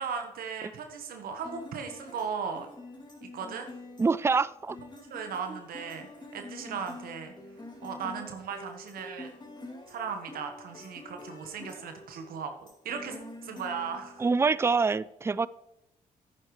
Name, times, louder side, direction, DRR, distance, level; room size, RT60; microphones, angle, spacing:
voice 1, 0.0-2.7 3.3-3.7 5.0-6.1 6.3-7.3 7.8-9.3 9.9-12.5 12.8-13.2 13.4-14.2, right 6 dB, 75° right, 5 dB, 1.2 m, -37 dB
sound 1, 1.4-14.6, left 2 dB, 30° left, 2.7 m, -47 dB
voice 2, 4.0-4.8 5.5-5.6 14.2-15.5, right 4 dB, 15° right, 20 dB, 0.4 m, -25 dB
10.5 x 9.5 x 3.2 m, 0.89 s
supercardioid pair, 60°, 15 cm